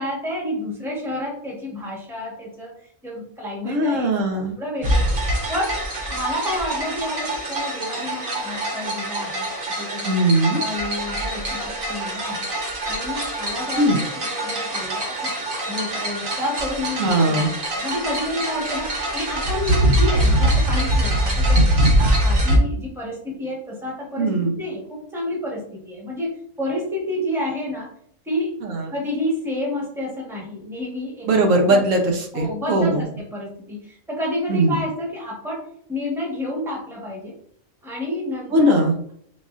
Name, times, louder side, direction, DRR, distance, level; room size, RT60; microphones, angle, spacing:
voice 1, 0.0-2.7 3.0-4.1 4.6-5.8 6.1-9.5 9.8-10.1 10.6-12.5 12.8-15.3 15.6-17.3 17.7-21.7 22.0-27.9 28.2-28.6 28.9-31.3 31.7-31.8 32.3-37.3 37.8-38.8, left 1 dB, ahead, -3 dB, 1.0 m, -29 dB
voice 2, 3.6-4.6 10.0-10.6 13.8-14.0 17.0-17.5 24.2-24.6 28.6-28.9 31.3-33.0 34.5-34.8 38.5-39.1, right 1 dB, 70° right, 2 dB, 1.1 m, -19 dB
sound 1, 4.8-22.6, right 1 dB, 50° right, 0.9 m, -23 dB
4.1 x 3.7 x 2.4 m, 0.63 s
omnidirectional pair, 1.4 m